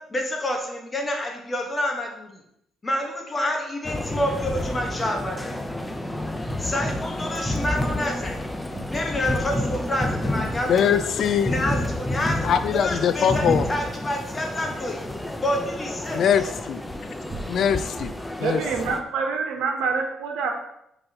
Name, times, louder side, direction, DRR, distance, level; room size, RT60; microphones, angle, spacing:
voice 1, 0.1-2.4 2.8-5.6 6.6-8.4 8.9-11.0 11.5-15.0 15.4-16.2, left 1 dB, 25° left, 1 dB, 1.7 m, -28 dB
sound 1, 3.8-19.0, left 1 dB, 10° left, 0.7 m, -30 dB
sound 2, 8.7-9.2 10.1-10.4 10.9-11.0 11.2-11.5 11.8-12.2 12.5-12.8 13.5-14.1 14.7-14.9 16.1-16.4 17.0-17.1 17.3-18.3 18.8-19.1, right 2 dB, 45° right, 1.7 m, -43 dB
voice 2, 10.7-11.5 12.4-13.7 16.1-16.8 17.5-18.1 18.4-18.6, left 8 dB, 65° left, 11 dB, 0.4 m, -22 dB
voice 3, 18.4-20.5, right 5 dB, 85° right, 3 dB, 1.2 m, -26 dB
5.5 x 4.2 x 5.7 m, 0.78 s
cardioid pair, 90°, 0 cm